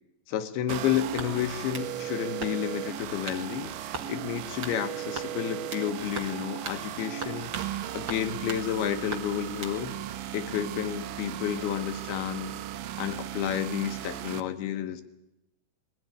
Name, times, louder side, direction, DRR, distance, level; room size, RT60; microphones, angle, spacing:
voice 1, 0.3-10.0 10.3-12.5 13.0-15.0, left 10 dB, 75° left, 9 dB, 2.6 m, -31 dB
sound 1, 0.7-14.4, right 12 dB, 75° right, 2.0 m, -36 dB
sound 2, 1.2-1.9 2.4-2.8 3.3-3.5 3.9-4.1 4.6-4.8 5.1-5.9 6.2-6.4 6.6-6.8 7.2-7.7 8.1-8.6 9.1-9.8, right 3 dB, 40° right, 1.7 m, -39 dB
21.0 x 17.0 x 10.0 m, 0.93 s
omnidirectional pair, 5.0 m